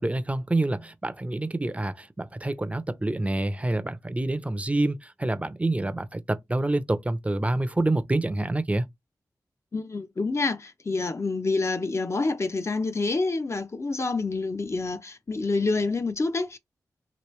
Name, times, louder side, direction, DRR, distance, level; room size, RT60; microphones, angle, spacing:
voice 1, 0.0-8.9, right 2 dB, 20° right, 0.5 m, -27 dB
voice 2, 9.7-16.6, left 3 dB, 40° left, 0.6 m, -27 dB
3.0 x 2.9 x 3.1 m
cardioid pair, 50°, 7 cm